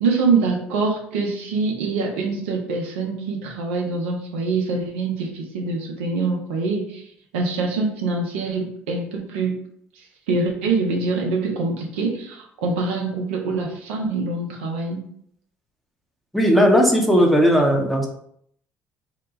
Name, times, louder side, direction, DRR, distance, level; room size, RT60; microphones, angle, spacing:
voice 1, 0.0-7.0 7.3-9.6 10.3-15.0, right 3 dB, 80° right, 0 dB, 0.6 m, -24 dB
voice 2, 16.3-18.1, equal, ahead, 0 dB, 0.8 m, -16 dB
2.8 x 2.2 x 3.9 m, 0.68 s
hypercardioid pair, 60°, 6 cm